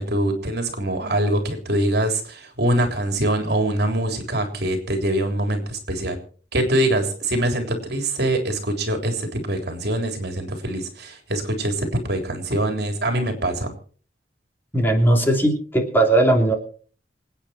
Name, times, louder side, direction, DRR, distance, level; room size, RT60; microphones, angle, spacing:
voice 1, 0.0-6.2 6.5-13.7, right 1 dB, 60° right, 5 dB, 3.6 m, -24 dB
voice 2, 14.7-16.5, right 1 dB, 10° left, 2 dB, 3.1 m, -18 dB
27.0 x 9.1 x 4.4 m, 0.44 s
head